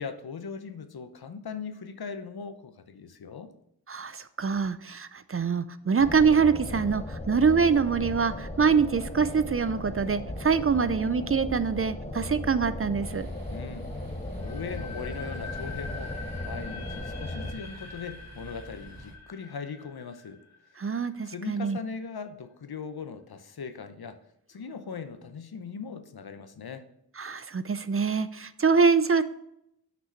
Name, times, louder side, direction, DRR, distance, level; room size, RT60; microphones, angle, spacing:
voice 1, 0.0-3.5 13.5-13.9 14.4-16.1 16.4-20.4 21.2-24.2 24.5-26.9, left 5 dB, 75° left, 9 dB, 0.7 m, -39 dB
voice 2, 3.9-13.3 20.8-21.8 27.2-29.2, right 5 dB, 35° right, 13 dB, 0.4 m, -25 dB
sound 1, 6.0-17.5, left 1 dB, 20° left, 0.8 m, -37 dB
sound 2, 13.1-19.2, right 1 dB, 65° right, 1.3 m, -48 dB
sound 3, 14.4-21.3, left 4 dB, 45° left, 1.1 m, -44 dB
6.1 x 5.8 x 4.3 m, 0.77 s
wide cardioid pair, 60°, 37 cm